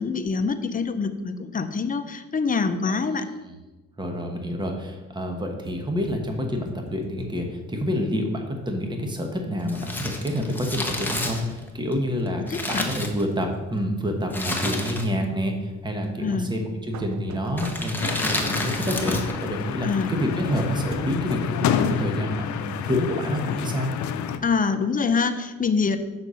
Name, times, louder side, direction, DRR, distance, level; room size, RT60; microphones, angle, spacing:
voice 1, 0.0-3.3 12.5-12.9 16.2-16.5 19.8-20.1 24.4-26.0, left 5 dB, 30° left, 9 dB, 0.6 m, -25 dB
voice 2, 4.0-23.9, equal, 15° right, 3 dB, 1.1 m, -28 dB
sound 1, 5.6-8.1 8.6-9.8 16.9-18.6 20.3-22.3, right 4 dB, 65° right, 0.7 m, -44 dB
Crumpling crinkling, 9.6-13.6 14.3-15.3 15.6-15.7 16.5-16.8 17.5-19.4 19.7-19.8, left 1 dB, 5° left, 1.1 m, -30 dB
sound 2, 18.0-24.4, left 8 dB, 70° left, 0.6 m, -29 dB
6.4 x 4.2 x 6.3 m, 1.2 s
cardioid pair, 90°, 30 cm